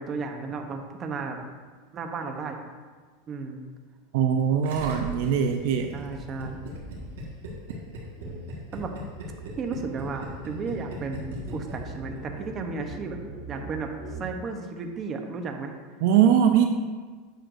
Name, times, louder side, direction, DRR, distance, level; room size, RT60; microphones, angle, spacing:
voice 1, 0.0-1.5 1.9-2.6 3.3-3.6 5.9-6.6 8.7-8.9 9.6-13.2 13.5-13.9 14.2-15.7, right 4 dB, 30° right, 4 dB, 0.8 m, -34 dB
voice 2, 4.1-5.9 16.0-16.6, right 8 dB, 65° right, 5 dB, 0.5 m, -21 dB
Gurgling, 4.6-12.2 12.5-12.6, right 1 dB, 85° right, 1.6 m, -39 dB
sound 1, 8.2-8.4 8.7-14.3, right 3 dB, ahead, 1.6 m, -42 dB
8.9 x 6.4 x 2.6 m, 1.4 s
supercardioid pair, 140°, 0 cm